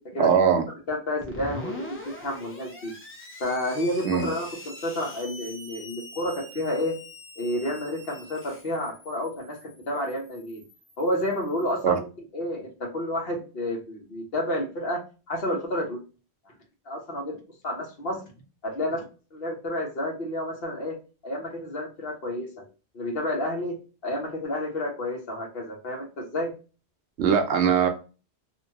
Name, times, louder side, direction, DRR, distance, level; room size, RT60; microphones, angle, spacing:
voice 1, 0.2-0.6 4.0-4.3 11.8-12.0 27.2-27.9, right 7 dB, 80° right, 6 dB, 0.9 m, -21 dB
voice 2, 0.9-2.9 3.4-6.9 7.4-10.6 11.0-12.1 12.3-15.0 15.3-16.0 16.5-16.6 16.9-17.4 17.6-18.2 18.6-19.0 19.3-20.9 21.2-22.7 22.9-23.8 24.0-26.5, left 1 dB, 60° left, 1 dB, 1.1 m, -30 dB
Screech, 1.2-11.7, left 1 dB, 20° left, 0.4 m, -44 dB
2.8 x 2.2 x 2.7 m, 0.34 s
omnidirectional pair, 1.1 m